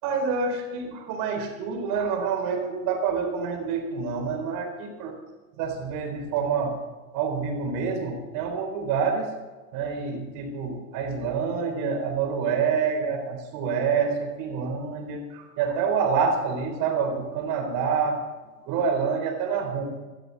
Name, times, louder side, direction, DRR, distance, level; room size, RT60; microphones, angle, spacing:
voice 1, 0.0-5.1 5.6-6.8 7.1-9.3 9.7-18.2 18.6-19.8, right 5 dB, 45° right, 3 dB, 4.0 m, -27 dB
17.5 x 13.0 x 4.1 m, 1.3 s
hypercardioid pair, 120°, 47 cm